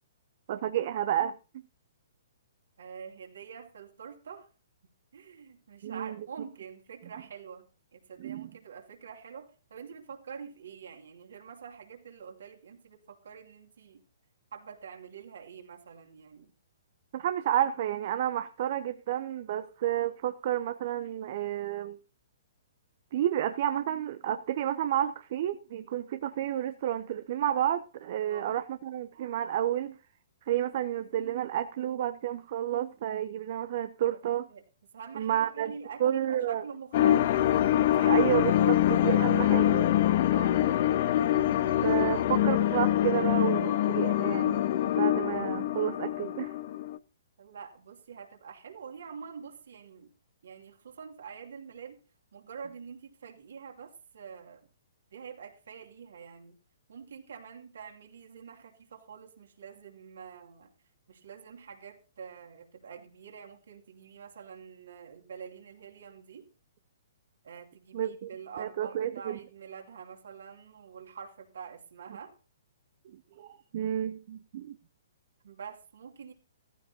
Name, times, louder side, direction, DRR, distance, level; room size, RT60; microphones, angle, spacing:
voice 1, 0.5-1.3 5.8-6.2 8.2-8.5 17.1-22.0 23.1-30.0 30.5-34.5 35.1-35.7 36.0-36.6 38.1-39.9 41.8-44.7 45.0-46.5 67.9-68.3 68.6-69.4 73.4-74.8, right 11 dB, 50° right, 10 dB, 0.8 m, -30 dB
voice 2, 2.8-4.5 5.1-7.6 7.9-14.0 14.5-16.5 28.2-28.5 34.5-34.6 34.9-37.3 37.9-38.3 38.6-38.7 40.3-40.6 47.4-50.1 50.4-52.0 52.3-54.6 55.1-56.6 56.9-60.7 61.1-66.5 67.4-72.3 75.4-76.3, right 6 dB, 65° right, 2 dB, 2.7 m, -46 dB
sound 1, 36.9-47.0, left 12 dB, 50° left, 0.7 m, -25 dB
15.0 x 15.0 x 2.9 m, 0.36 s
figure-of-eight pair, 125°, 0 cm